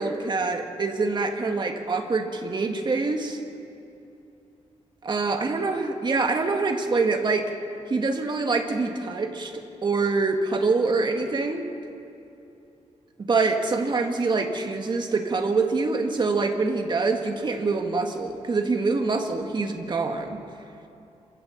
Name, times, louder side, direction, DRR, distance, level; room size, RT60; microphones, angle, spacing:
voice 1, 0.0-3.4 5.0-7.5 7.9-11.7 13.2-20.4, right 3 dB, 40° right, 4 dB, 1.8 m, -25 dB
27.0 x 16.0 x 7.2 m, 2.8 s
wide cardioid pair, 140°, 12 cm